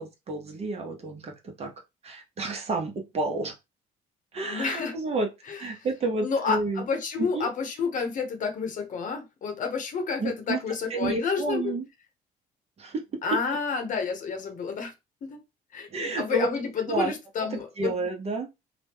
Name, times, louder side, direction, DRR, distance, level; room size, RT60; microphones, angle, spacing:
voice 1, 0.0-1.7 2.0-3.5 4.3-5.3 5.6-6.8 7.2-7.5 10.2-10.6 10.9-11.8 12.8-13.0 15.9-16.5 16.9-17.1 17.5-18.5, right 3 dB, 40° right, 0.8 m, -30 dB
voice 2, 4.5-5.0 5.5-5.6 6.2-11.7 13.2-14.9 15.2-15.4 15.7-17.9, left 5 dB, 50° left, 0.9 m, -30 dB
2.9 x 2.2 x 3.5 m
cardioid pair, 110°, 17 cm